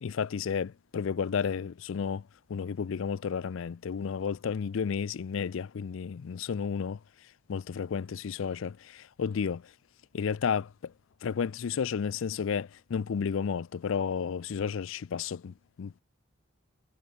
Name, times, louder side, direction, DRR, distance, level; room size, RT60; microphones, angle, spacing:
voice 1, 0.0-2.2 2.5-7.0 7.5-9.6 10.1-10.9 11.2-16.0, left 6 dB, 65° left, 0.4 m, -32 dB
head